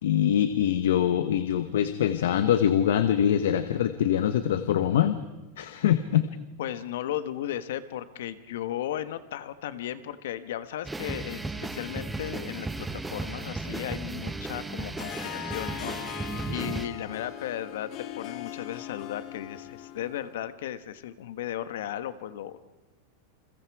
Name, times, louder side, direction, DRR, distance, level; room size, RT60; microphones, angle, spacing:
voice 1, 0.0-5.2 5.6-6.3, left 10 dB, 85° left, 10 dB, 1.2 m, -24 dB
voice 2, 6.6-17.9 18.1-22.6, left 11 dB, 70° left, 13 dB, 1.3 m, -35 dB
sound 1, 10.9-16.9, right 2 dB, 5° right, 0.8 m, -35 dB
Harp, 15.0-20.4, left 11 dB, 30° left, 1.4 m, -40 dB
29.5 x 22.5 x 4.8 m, 1.1 s
supercardioid pair, 180°, 0 cm